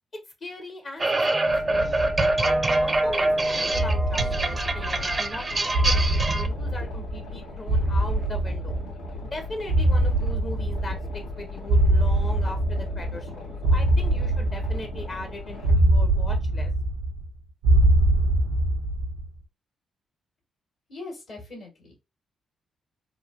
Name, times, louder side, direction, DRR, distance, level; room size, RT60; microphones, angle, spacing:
voice 1, 0.4-1.1 1.3-1.9 2.2-8.8 9.2-16.7, left 2 dB, 45° left, 0.7 m, -39 dB
sound 1, 1.0-6.5, right 2 dB, 30° right, 0.5 m, -24 dB
Boat Water vehicle, 1.4-15.7, left 3 dB, 85° left, 0.9 m, -39 dB
sound 2, 1.7-3.1 3.7-5.3 5.7-7.4 7.7-9.3 9.7-11.3 11.7-13.3 13.6-15.2 15.6-17.3 17.6-19.3, right 1 dB, 85° right, 0.5 m, -23 dB
voice 2, 20.9-22.0, left 2 dB, 70° left, 1.5 m, -40 dB
3.0 x 2.2 x 2.4 m
hypercardioid pair, 40°, 0 cm